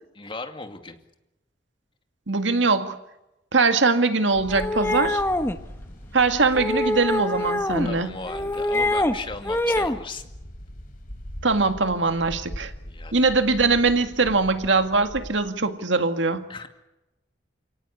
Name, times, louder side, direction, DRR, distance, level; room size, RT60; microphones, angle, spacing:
voice 1, 0.2-1.0 7.8-10.2 12.8-13.1 16.5-16.7, left 3 dB, 30° left, 6 dB, 2.4 m, -36 dB
voice 2, 2.3-3.0 3.5-5.2 6.1-8.1 11.4-12.7 13.1-16.5, right 3 dB, 80° right, 8 dB, 2.0 m, -22 dB
sound 1, 4.3-15.4, equal, 50° left, 4.8 m, -41 dB
sound 2, 4.5-5.6 6.5-7.9 8.3-9.2 9.4-10.0, left 1 dB, 15° left, 1.3 m, -24 dB
29.5 x 18.0 x 8.5 m, 0.96 s
head